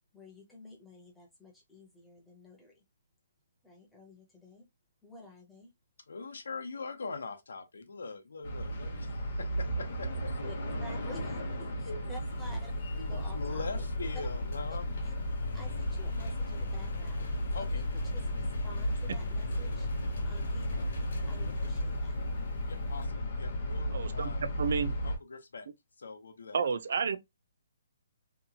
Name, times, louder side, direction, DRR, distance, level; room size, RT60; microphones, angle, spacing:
voice 1, 0.1-2.8 3.6-4.7 5.0-5.7 10.4-12.7 13.0-13.9 14.7-15.2 15.5-17.3 17.5-19.9 20.2-20.9 21.3-22.1, left 1 dB, ahead, 0.6 m, -51 dB
voice 2, 6.1-10.3 11.9-12.0 13.0-14.9 17.5-17.8 22.7-24.5 25.0-25.7 26.0-26.7, left 4 dB, 85° left, 0.7 m, -42 dB
sound 1, 8.4-25.2, left 1 dB, 40° left, 0.7 m, -34 dB
Engine, 12.2-23.1, equal, 60° left, 1.0 m, -41 dB
voice 3, 23.9-25.0 26.5-27.2, right 6 dB, 50° right, 0.4 m, -31 dB
2.8 x 2.2 x 2.7 m
hypercardioid pair, 180°, 0 cm